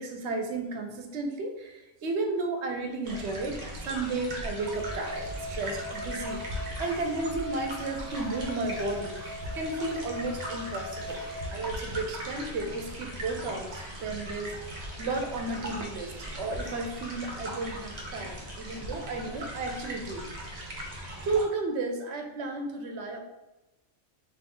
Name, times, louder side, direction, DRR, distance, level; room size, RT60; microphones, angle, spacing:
voice 1, 0.0-6.4 6.8-11.2 11.5-20.2 21.2-23.2, right 3 dB, 70° right, 4 dB, 0.9 m, -33 dB
sound 1, 3.0-21.4, equal, 40° right, 0.8 m, -39 dB
sound 2, 4.6-11.5, left 1 dB, 45° left, 0.8 m, -40 dB
3.8 x 2.7 x 3.7 m, 1.0 s
omnidirectional pair, 1.2 m